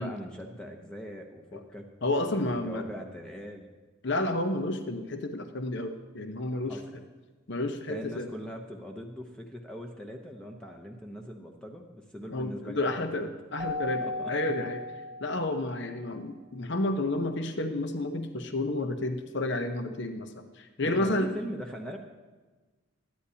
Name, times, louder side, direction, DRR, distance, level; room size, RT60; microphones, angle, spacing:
voice 1, 0.0-1.9 2.2-3.7 6.6-6.9 7.9-13.3 14.0-14.3 20.8-22.0, equal, 5° left, 2 dB, 0.7 m, -41 dB
voice 2, 2.0-2.8 4.0-6.8 7.5-8.3 12.3-14.0 14.3-14.8 15.2-20.3 20.6-21.3, left 2 dB, 55° left, 7 dB, 0.8 m, -30 dB
Keyboard (musical), 13.6-15.9, left 2 dB, 25° right, 0.8 m, -36 dB
23.0 x 9.8 x 2.8 m, 1.3 s
head